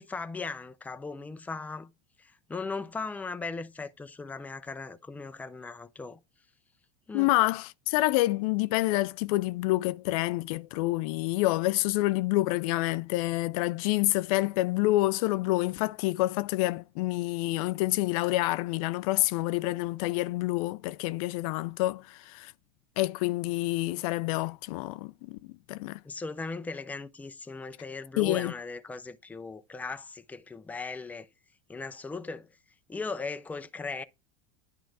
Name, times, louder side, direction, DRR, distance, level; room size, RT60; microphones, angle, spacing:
voice 1, 0.0-1.9 2.2-6.2 7.1-7.3 26.0-31.3 31.7-32.5 32.9-34.0, left 4 dB, 10° left, 0.5 m, -38 dB
voice 2, 7.1-22.5 23.0-26.0 28.2-28.5, left 18 dB, 70° left, 0.4 m, -28 dB
10.5 x 3.8 x 4.6 m
supercardioid pair, 125°, 19 cm